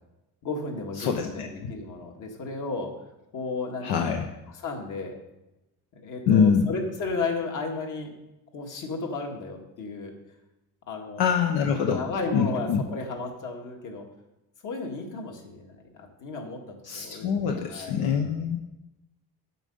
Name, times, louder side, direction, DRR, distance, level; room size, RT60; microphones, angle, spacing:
voice 1, 0.4-2.9 3.3-4.2 4.5-5.2 5.9-8.1 8.5-10.1 10.9-11.3 11.9-14.1 14.6-18.2, left 3 dB, 55° left, 2 dB, 1.9 m, -34 dB
voice 2, 1.0-1.7 3.8-4.2 6.3-6.7 11.2-12.0 12.3-12.8 16.8-18.6, left 6 dB, 80° left, 4 dB, 1.0 m, -24 dB
9.1 x 7.6 x 5.4 m, 0.95 s
cardioid pair, 145°, 37 cm